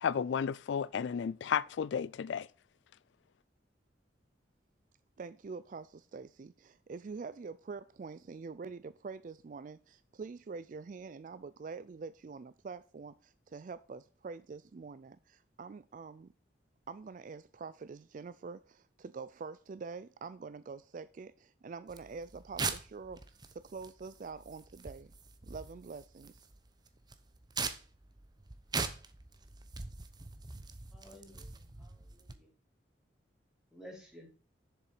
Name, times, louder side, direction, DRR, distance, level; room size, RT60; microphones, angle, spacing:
voice 1, 0.0-2.5, left 7 dB, 75° left, 0.3 m, -33 dB
voice 2, 5.2-16.3 16.9-25.1 25.4-26.5, right 4 dB, 45° right, 0.3 m, -45 dB
sound 1, 21.9-32.3, right 4 dB, 20° right, 0.8 m, -42 dB
voice 3, 30.9-32.5 33.7-34.3, equal, 5° right, 3.3 m, -54 dB
7.3 x 6.9 x 4.7 m
head